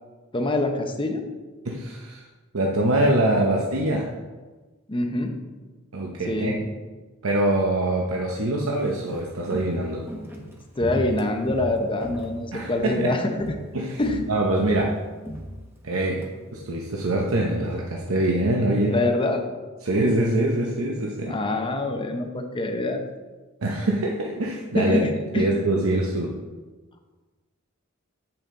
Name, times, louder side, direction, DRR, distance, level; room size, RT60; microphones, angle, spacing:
voice 1, 0.3-1.2 4.9-5.4 6.3-6.7 10.8-13.5 14.0-14.3 18.9-19.5 21.3-23.0 24.7-25.5, left 2 dB, 25° left, 4 dB, 0.7 m, -25 dB
voice 2, 1.6-2.2 2.5-4.1 5.9-6.6 7.2-10.0 12.5-13.1 13.7-14.0 14.3-14.9 15.8-16.2 16.5-19.0 19.8-21.4 23.6-25.0 25.3-26.3, right 1 dB, 85° right, -1 dB, 0.8 m, -24 dB
Walk footsteps, 8.7-13.0 13.3-13.7 14.0-16.3 16.6-16.7, equal, 10° right, 1.0 m, -37 dB
8.6 x 5.8 x 3.7 m, 1.3 s
head